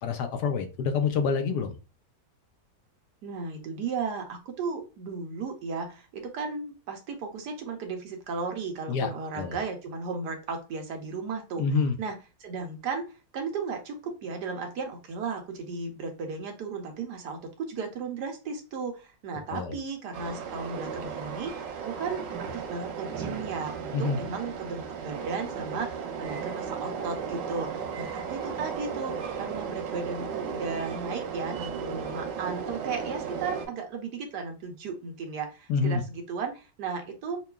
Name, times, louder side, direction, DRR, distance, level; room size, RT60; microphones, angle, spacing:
voice 1, 0.0-1.8 8.9-9.1 9.4-9.6 11.6-11.9 19.5-19.8 23.9-24.2 35.7-36.0, left 5 dB, 75° left, 6 dB, 1.1 m, -27 dB
voice 2, 3.2-11.7 12.0-25.9 26.2-37.4, right 4 dB, 70° right, 4 dB, 1.3 m, -35 dB
Train, 20.1-33.7, right 6 dB, 90° right, 1.4 m, -35 dB
5.5 x 2.3 x 2.3 m, 0.31 s
omnidirectional pair, 1.9 m